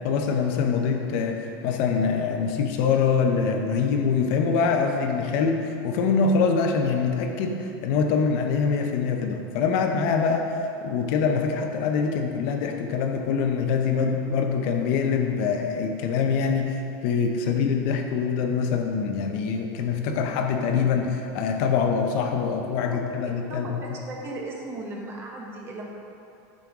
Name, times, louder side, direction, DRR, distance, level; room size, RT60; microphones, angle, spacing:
voice 1, 0.0-23.8, left 5 dB, 55° left, 4 dB, 0.7 m, -24 dB
voice 2, 14.0-14.4 22.8-23.0 23.5-25.9, right 2 dB, 25° right, 0 dB, 1.0 m, -37 dB
9.1 x 6.4 x 3.6 m, 2.8 s
cardioid pair, 165°, 9 cm